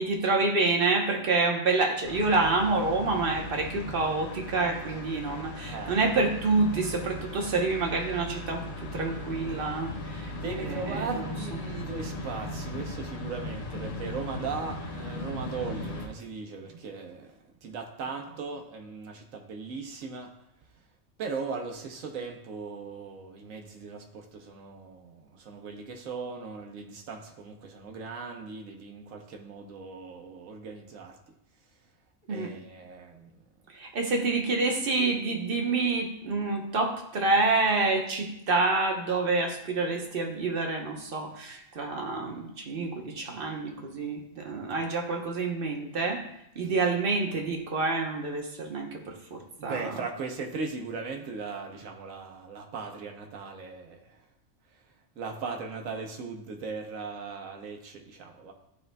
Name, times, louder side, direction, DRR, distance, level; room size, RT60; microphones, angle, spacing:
voice 1, 0.0-10.3 10.6-11.3 32.3-32.5 33.7-46.3 46.5-49.9, right 3 dB, 50° right, 2 dB, 1.1 m, -28 dB
sound 1, 2.0-16.1, left 1 dB, 85° left, 1.3 m, -38 dB
voice 2, 5.6-6.1 10.4-20.3 21.2-31.2 32.3-33.3 44.4-44.5 46.6-46.7 49.6-54.2 55.2-58.5, right 4 dB, 90° right, 3 dB, 1.2 m, -38 dB
12.5 x 4.4 x 2.2 m, 0.80 s
omnidirectional pair, 1.3 m